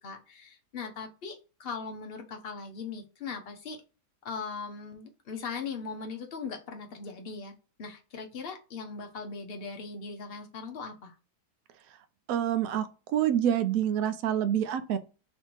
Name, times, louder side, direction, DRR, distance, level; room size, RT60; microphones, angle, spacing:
voice 1, 0.0-3.8 4.2-7.5 7.8-11.2, left 5 dB, 60° left, 0.6 m, -39 dB
voice 2, 12.3-15.0, right 10 dB, 70° right, 0.9 m, -27 dB
3.3 x 2.8 x 4.4 m
omnidirectional pair, 1.7 m